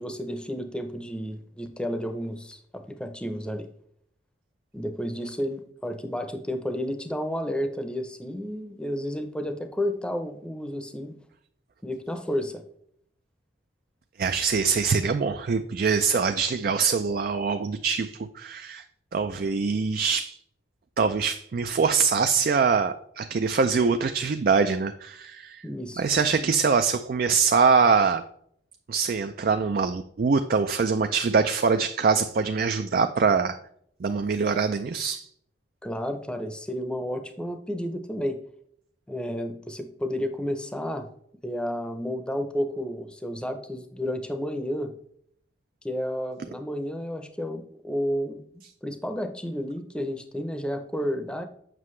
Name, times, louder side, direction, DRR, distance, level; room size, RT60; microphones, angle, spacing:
voice 1, 0.0-3.7 4.7-11.1 11.8-12.6 25.6-26.0 35.8-38.4 39.1-41.1 41.4-44.9 45.8-48.4 48.8-51.4, equal, 5° left, 7 dB, 0.6 m, -31 dB
voice 2, 14.2-18.8 19.1-20.4 21.0-25.7 26.0-28.2 28.9-33.6 34.0-35.3, right 5 dB, 50° right, 8 dB, 0.4 m, -23 dB
7.5 x 5.9 x 3.2 m, 0.66 s
head